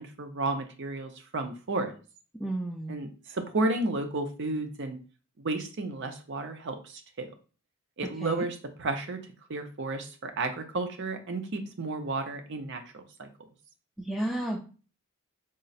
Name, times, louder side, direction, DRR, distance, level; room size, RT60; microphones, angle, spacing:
voice 1, 0.0-1.9 2.9-5.0 5.4-7.3 8.0-9.2 9.5-13.3, right 2 dB, 55° right, 6 dB, 0.6 m, -32 dB
voice 2, 2.4-3.0 8.2-8.4 14.0-14.6, right 1 dB, ahead, -2 dB, 0.4 m, -32 dB
3.8 x 2.1 x 4.0 m, 0.36 s
head